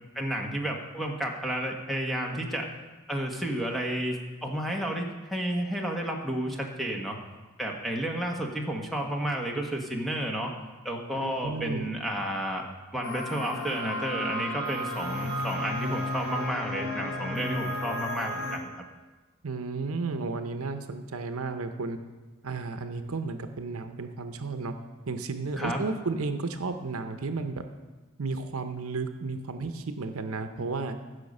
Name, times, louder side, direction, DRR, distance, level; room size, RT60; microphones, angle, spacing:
voice 1, 0.1-2.7 3.1-7.2 7.6-10.5 10.8-12.7 12.9-18.7 25.6-25.8, right 1 dB, ahead, 0 dB, 1.3 m, -31 dB
voice 2, 11.2-11.9 19.4-22.0 22.4-24.7 25.1-27.6 28.2-31.0, right 3 dB, 75° right, 8 dB, 0.8 m, -33 dB
sound 1, 13.0-18.6, left 1 dB, 70° left, 1.9 m, -33 dB
15.0 x 6.4 x 5.4 m, 1.3 s
head